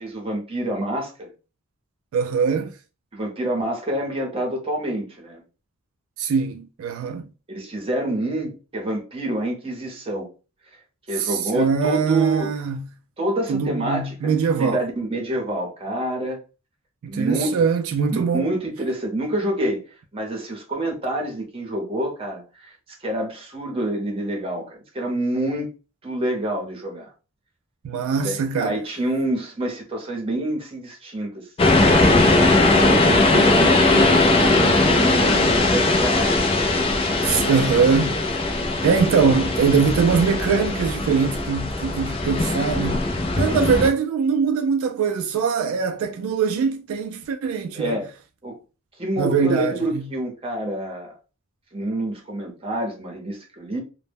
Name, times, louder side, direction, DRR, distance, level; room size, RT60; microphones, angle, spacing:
voice 1, 0.0-1.3 3.1-5.4 7.5-10.3 11.1-12.5 13.2-14.2 14.6-16.4 17.1-17.5 18.1-19.8 20.1-22.7 23.0-25.7 26.0-27.1 28.2-31.5 32.5-36.4 43.4-43.6 47.7-48.1 48.4-48.6 49.0-51.1 51.7-53.8, right 1 dB, 25° right, 0.7 m, -27 dB
voice 2, 2.1-2.7 6.2-7.3 11.2-12.8 13.5-14.8 17.0-18.5 27.8-28.8 37.2-38.2 38.8-43.1 43.4-48.0 49.2-50.0, right 5 dB, 75° right, 0.3 m, -22 dB
sound 1, 31.6-43.9, left 2 dB, 25° left, 0.4 m, -19 dB
2.1 x 2.0 x 3.3 m
head